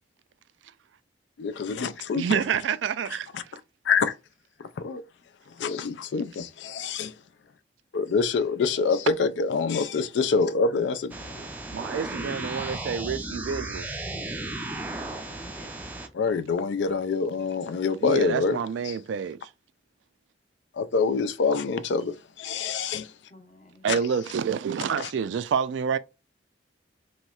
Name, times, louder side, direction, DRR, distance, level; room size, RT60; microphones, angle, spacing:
voice 1, 1.4-2.3 3.3-3.4 3.9-4.1 4.8-5.0 5.6-7.1 7.9-11.1 16.1-18.6 18.9-19.0 20.7-23.1 23.9-24.0 25.0-25.1, left 5 dB, 75° left, 0.4 m, -26 dB
voice 2, 2.1-3.3 11.7-14.0 18.0-19.5 23.8-26.0, right 7 dB, 85° right, 0.3 m, -28 dB
sound 1, 11.1-16.1, right 2 dB, 10° right, 0.4 m, -35 dB
voice 3, 11.4-11.9 14.9-15.9 16.3-16.4 23.3-23.8 25.4-25.5, equal, 40° left, 0.7 m, -50 dB
3.0 x 2.9 x 2.3 m
head